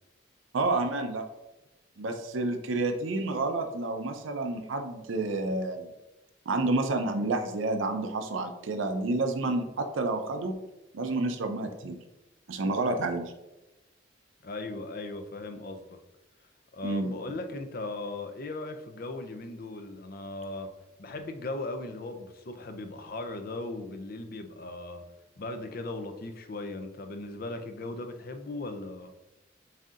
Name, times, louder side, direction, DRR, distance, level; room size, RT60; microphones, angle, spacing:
voice 1, 0.5-1.2 2.0-5.9 6.5-10.5 10.9-12.0 12.5-13.3 16.8-17.1, right 2 dB, 85° right, 6 dB, 0.5 m, -29 dB
voice 2, 14.4-16.0 16.7-20.7 21.0-25.0 25.4-29.1, left 2 dB, 50° left, 6 dB, 0.5 m, -38 dB
7.4 x 2.7 x 2.5 m, 1.0 s
head